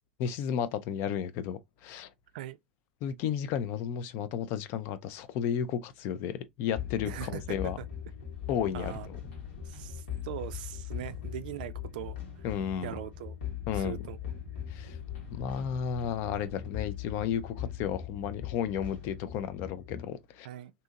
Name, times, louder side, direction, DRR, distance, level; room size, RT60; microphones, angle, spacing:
voice 1, 0.2-2.1 3.0-7.8 8.5-9.2 12.4-12.9 13.7-14.0 14.7-15.0 15.3-20.5, left 8 dB, 45° left, 0.4 m, -33 dB
sound 1, 6.8-20.1, left 9 dB, 60° left, 1.1 m, -40 dB
voice 2, 7.1-7.8 8.7-9.1 9.6-12.2 12.8-13.4 13.7-14.7 20.4-20.7, right 13 dB, 60° right, 0.3 m, -41 dB
2.7 x 2.7 x 2.3 m
figure-of-eight pair, 85°, 5 cm